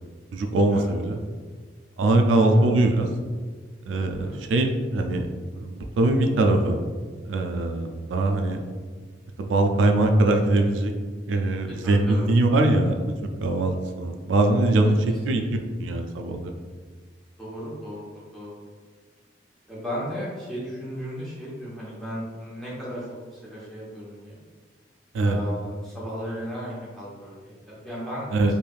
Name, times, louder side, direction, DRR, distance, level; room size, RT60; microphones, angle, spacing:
voice 1, 0.3-1.2 2.0-3.1 3.9-5.3 5.5-6.8 7.3-8.6 9.4-10.9 11.3-15.4 15.8-16.5 25.1-25.4 28.3-28.5, right 2 dB, 90° right, 4 dB, 0.3 m, -22 dB
voice 2, 2.3-2.6 4.2-4.4 8.2-8.4 11.8-12.3 14.7-15.0 15.3-15.4 17.4-18.0 18.3-18.6 19.7-24.4 25.2-28.5, equal, ahead, -9 dB, 1.0 m, -35 dB
3.2 x 2.6 x 2.3 m, 1.5 s
head